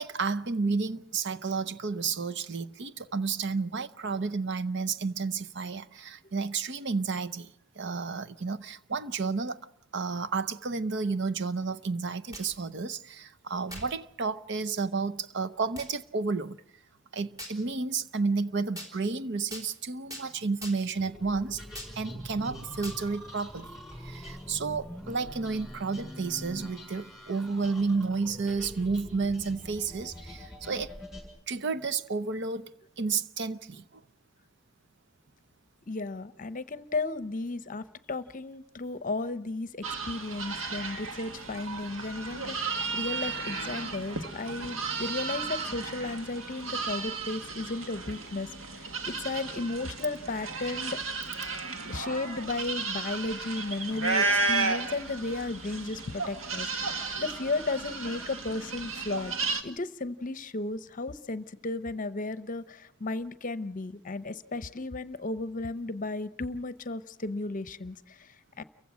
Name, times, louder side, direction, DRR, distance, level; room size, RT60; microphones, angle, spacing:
voice 1, 0.0-9.6 9.9-16.6 17.1-21.6 22.0-30.9 31.5-32.7 33.0-34.0 48.9-49.0 51.7-51.8, right 4 dB, 60° right, 0.7 m, -31 dB
sound 1, 12.1-12.6 13.7-13.9 14.6-14.7 15.8-15.9 17.4-17.6 18.8-18.9 19.5-19.7 20.1-20.3 20.6-21.0 21.7-22.0 22.8-23.0, equal, 15° right, 3.7 m, -42 dB
sound 2, 21.0-31.3, equal, ahead, 7.5 m, -44 dB
voice 2, 35.9-51.0 51.9-56.7 57.2-59.4 59.6-68.6, left 3 dB, 40° left, 0.8 m, -34 dB
sound 3, 39.8-59.6, right 4 dB, 75° right, 1.8 m, -34 dB
29.0 x 15.5 x 6.2 m
head